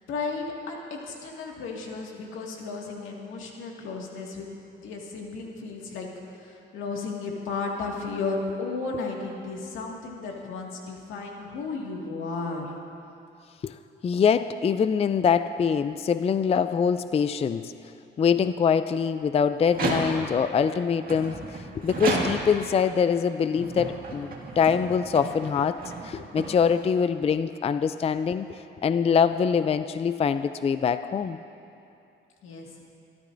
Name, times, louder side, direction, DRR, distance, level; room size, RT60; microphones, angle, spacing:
voice 1, 0.1-4.5 4.8-6.1 6.4-12.7 32.4-32.7, left 4 dB, 85° left, -1 dB, 2.0 m, -34 dB
voice 2, 14.0-17.7 18.2-31.4, left 6 dB, 30° left, 12 dB, 0.4 m, -24 dB
sound 1, 19.6-20.5 21.1-22.7 23.4-27.0, right 3 dB, 45° right, 2.0 m, -32 dB
26.5 x 13.0 x 2.6 m, 2.7 s
cardioid pair, 90°, 20 cm